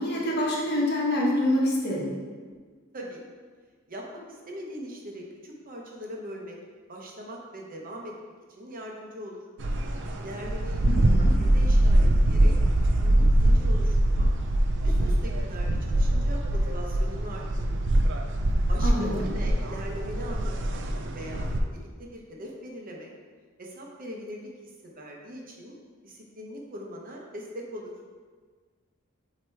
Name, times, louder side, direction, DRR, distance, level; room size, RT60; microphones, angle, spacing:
voice 1, 0.0-2.2 10.9-11.3 18.8-19.2, left 1 dB, 55° left, -4 dB, 1.4 m, -26 dB
voice 2, 3.9-6.6 6.9-8.1 8.5-9.4 10.2-11.0 11.4-12.5 13.0-14.3 14.8-17.8 18.7-20.8 21.1-23.1 23.6-25.7 26.0-27.9, equal, 45° right, -1 dB, 0.9 m, -41 dB
sound 1, 9.6-21.6, right 1 dB, 60° right, 0.5 m, -23 dB
7.7 x 3.0 x 4.6 m, 1.5 s
head